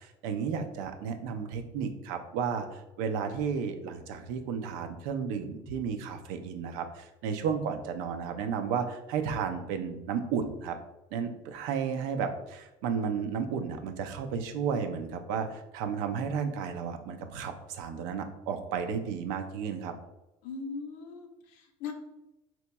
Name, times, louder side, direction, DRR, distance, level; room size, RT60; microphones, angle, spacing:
voice 1, 0.0-10.8 11.1-19.9, right 6 dB, 80° right, 6 dB, 0.5 m, -33 dB
voice 2, 20.4-21.9, left 5 dB, 75° left, 5 dB, 0.6 m, -39 dB
4.3 x 2.9 x 2.2 m, 0.98 s
cardioid pair, 125°, 14 cm